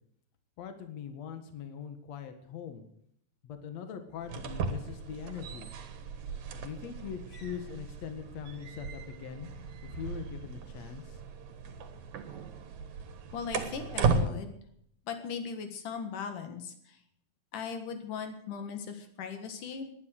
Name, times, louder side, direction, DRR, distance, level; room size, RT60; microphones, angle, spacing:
voice 1, 0.6-2.8 3.4-5.7 6.5-9.5 9.9-11.2, left 8 dB, 60° left, 8 dB, 2.7 m, -42 dB
sound 1, 4.2-14.3, right 4 dB, 70° right, 2.9 m, -36 dB
voice 2, 13.3-14.6 15.1-17.0 17.5-19.9, left 6 dB, 90° left, 7 dB, 3.3 m, -38 dB
19.5 x 9.9 x 6.6 m, 0.68 s
omnidirectional pair, 3.6 m